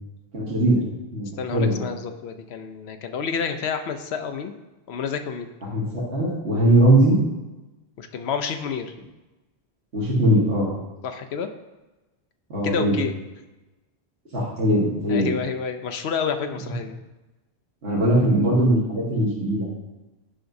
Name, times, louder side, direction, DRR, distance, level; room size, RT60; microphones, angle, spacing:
voice 1, 0.3-0.8 1.1-1.9 5.7-7.2 9.9-10.7 12.5-13.0 14.3-15.3 17.8-19.7, right 1 dB, 80° right, -8 dB, 1.8 m, -20 dB
voice 2, 1.4-4.5 4.9-5.5 8.0-8.9 11.0-11.5 12.6-13.1 15.1-17.0, left 6 dB, 75° left, 8 dB, 0.9 m, -29 dB
10.0 x 5.9 x 2.6 m, 1.1 s
omnidirectional pair, 1.1 m